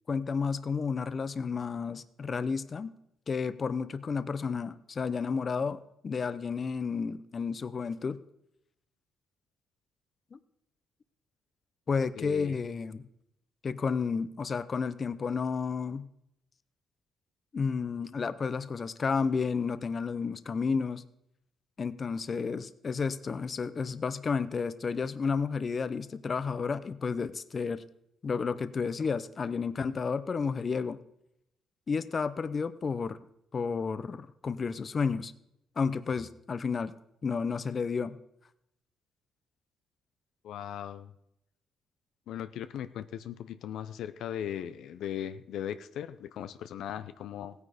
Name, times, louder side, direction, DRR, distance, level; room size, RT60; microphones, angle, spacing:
voice 1, 0.1-2.9 3.3-8.2 10.3-10.4 11.9-13.0 13.6-16.1 17.5-21.0 21.8-27.8 28.2-31.0 31.9-33.2 33.5-35.3 35.8-36.9 37.2-38.2, left 5 dB, 40° left, 15 dB, 0.6 m, -31 dB
voice 2, 12.2-12.6 40.4-41.1 42.3-47.5, left 10 dB, 80° left, 12 dB, 0.6 m, -38 dB
16.0 x 9.5 x 5.0 m, 0.81 s
cardioid pair, 90°, 0 cm